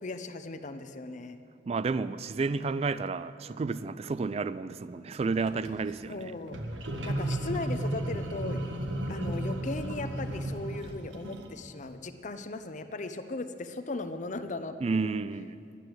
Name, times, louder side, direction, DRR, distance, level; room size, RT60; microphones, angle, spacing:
voice 1, 0.0-1.4 6.1-6.6 7.0-8.6 9.1-15.1, left 2 dB, 40° left, 10 dB, 0.7 m, -37 dB
voice 2, 1.7-6.3 14.8-15.6, right 4 dB, 35° right, 15 dB, 0.3 m, -31 dB
sound 1, 5.3-5.7 6.5-11.5, right 1 dB, 85° right, 1.3 m, -33 dB
12.0 x 10.0 x 7.7 m, 2.5 s
head